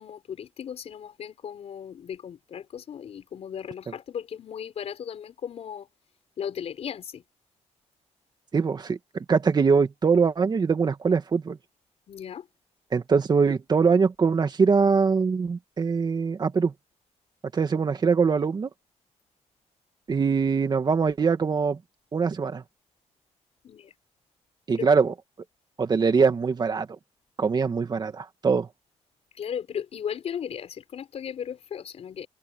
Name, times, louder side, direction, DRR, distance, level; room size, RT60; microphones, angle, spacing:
voice 1, 0.0-5.8 6.4-7.0 12.1-12.4 23.6-23.8 24.8-24.9 29.4-32.3, left 8 dB, 60° left, 4.9 m, -36 dB
voice 2, 8.5-11.6 12.9-16.7 17.5-18.7 20.1-21.8 22.1-22.6 24.7-25.1 25.8-27.0 27.4-28.7, right 5 dB, 35° right, 2.3 m, -23 dB
cardioid pair, 125°, 12 cm